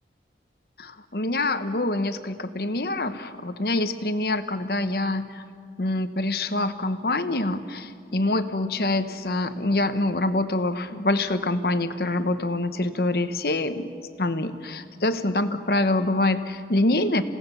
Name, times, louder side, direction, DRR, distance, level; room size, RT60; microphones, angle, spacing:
voice 1, 0.8-5.4 5.8-13.9 14.2-17.2, left 2 dB, 60° left, 10 dB, 1.1 m, -25 dB
28.5 x 17.5 x 6.9 m, 2.2 s
head